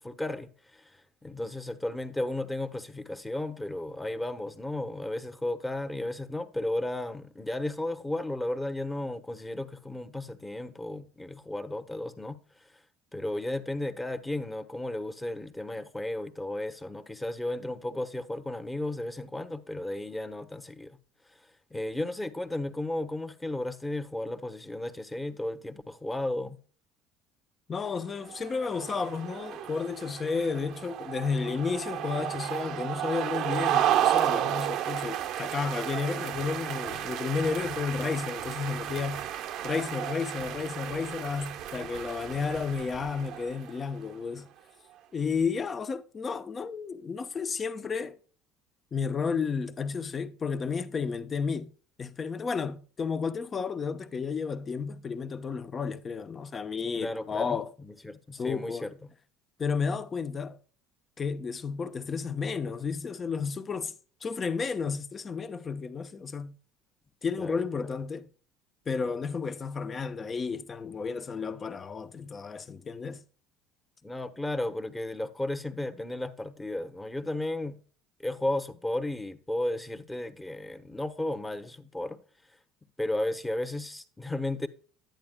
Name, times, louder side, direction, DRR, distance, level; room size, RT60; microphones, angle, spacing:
voice 1, 0.0-12.4 13.1-21.0 21.4-26.6 57.0-59.1 67.4-67.6 74.0-77.8 78.2-82.2 83.0-84.7, left 1 dB, 10° left, 1.1 m, -34 dB
voice 2, 27.7-39.3 39.6-44.5 45.1-48.2 48.9-51.7 52.0-57.7 58.3-58.9 59.6-60.6 61.2-63.9 64.2-66.6 67.2-68.3 68.9-73.2, left 5 dB, 30° left, 0.8 m, -32 dB
sound 1, 28.2-43.9, right 11 dB, 65° right, 0.8 m, -32 dB
10.5 x 8.8 x 2.2 m
supercardioid pair, 90°, 0 cm